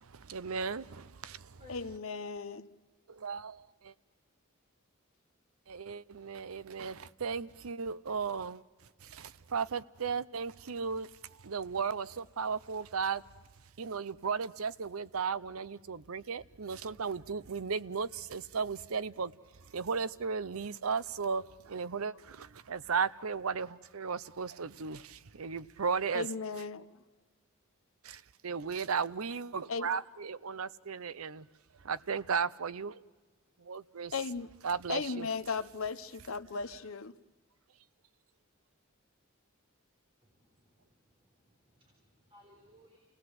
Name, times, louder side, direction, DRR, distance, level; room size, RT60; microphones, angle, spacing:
voice 1, 0.0-1.6 3.1-3.9 5.7-8.6 9.0-13.2 13.8-19.3 19.6-26.3 28.0-31.5 31.8-33.0 33.6-34.1 34.6-35.3, right 5 dB, 90° right, 0.7 m, -35 dB
voice 2, 1.7-2.7 26.1-27.0 29.7-29.9 34.1-34.5 34.9-37.1, left 4 dB, 70° left, 0.9 m, -36 dB
voice 3, 40.4-41.0 41.4-43.0, left 2 dB, 25° right, 4.0 m, -60 dB
29.0 x 17.5 x 7.9 m
head